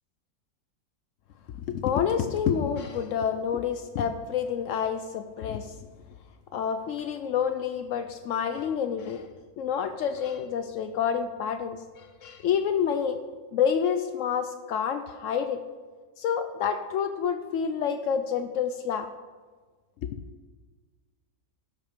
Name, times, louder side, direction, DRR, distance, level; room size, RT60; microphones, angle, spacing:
voice 1, 1.7-5.8 6.5-9.3 9.6-13.2 13.5-15.6 16.2-19.1 20.0-20.2, left 7 dB, 85° left, 8 dB, 0.6 m, -28 dB
12.0 x 6.4 x 5.1 m, 1.4 s
omnidirectional pair, 1.9 m